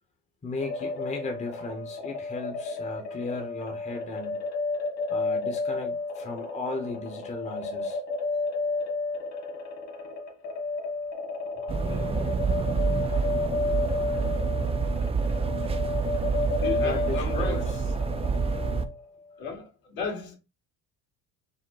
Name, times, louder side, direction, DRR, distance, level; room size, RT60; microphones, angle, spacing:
voice 1, 0.4-4.5 5.1-8.0 13.1-13.3 14.0-14.2 16.8-17.7 18.5-18.6, left 3 dB, 20° left, 0.8 m, -36 dB
sound 1, 0.6-19.0, left 3 dB, 45° left, 1.7 m, -32 dB
sound 2, 11.7-18.9, right 5 dB, 15° right, 0.3 m, -28 dB
voice 2, 11.8-12.4 15.6-15.7 16.6-17.8 19.4-20.3, left 4 dB, 65° left, 2.1 m, -35 dB
5.1 x 2.1 x 3.8 m
cardioid pair, 120°, 38 cm